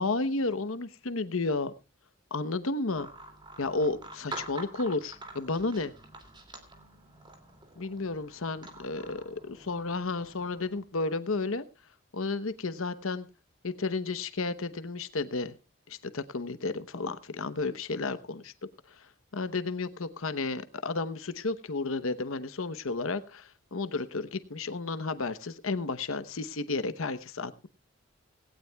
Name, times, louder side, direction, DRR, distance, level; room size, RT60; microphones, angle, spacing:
voice 1, 0.0-1.7 2.3-3.1 3.6-5.9 7.8-11.6 12.1-13.3 13.6-15.5 15.9-18.5 18.9-27.7, left 3 dB, 75° left, 12 dB, 0.9 m, -32 dB
sound 1, 2.9-10.8, right 2 dB, 20° right, 2.5 m, -47 dB
18.0 x 17.5 x 2.3 m, 0.31 s
head